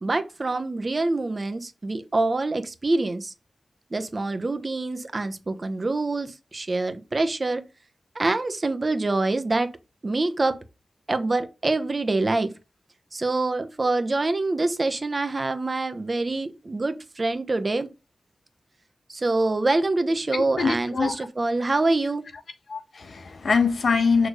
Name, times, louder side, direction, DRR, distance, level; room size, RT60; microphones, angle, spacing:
voice 1, 0.0-3.3 3.9-7.6 8.1-9.7 10.0-10.5 11.1-12.5 13.1-17.9 19.1-22.2, right 2 dB, 40° right, 1.0 m, -25 dB
voice 2, 20.3-21.3 22.7-24.3, left 5 dB, 80° left, 1.2 m, -23 dB
6.5 x 3.5 x 5.0 m
wide cardioid pair, 70°, 0 cm